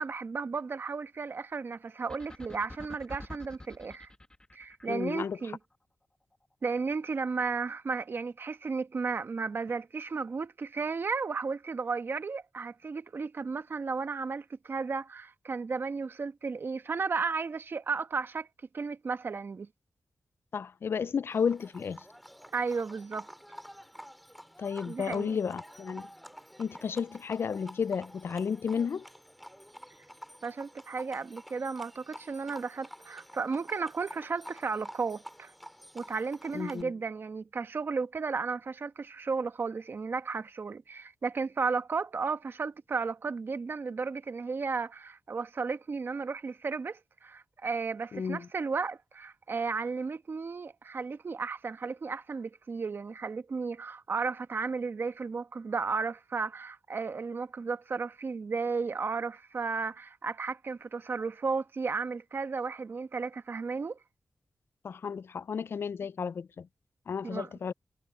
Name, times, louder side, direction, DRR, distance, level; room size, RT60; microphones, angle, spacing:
voice 1, 0.0-4.1 4.5-5.6 6.6-18.5 18.7-19.7 22.5-23.3 24.9-25.4 30.4-35.5 35.9-64.0 67.2-67.5, right 4 dB, 60° right, 1.4 m, -34 dB
sound 1, 2.1-5.5, left 1 dB, 20° left, 1.6 m, -47 dB
voice 2, 4.8-5.4 20.5-22.0 24.6-26.1 26.6-29.1 36.5-36.9 48.1-48.5 64.8-66.7 67.1-67.7, left 6 dB, 70° left, 0.4 m, -32 dB
Livestock farm animals working animals, 21.3-36.8, equal, ahead, 2.4 m, -49 dB
cardioid pair, 50°, 4 cm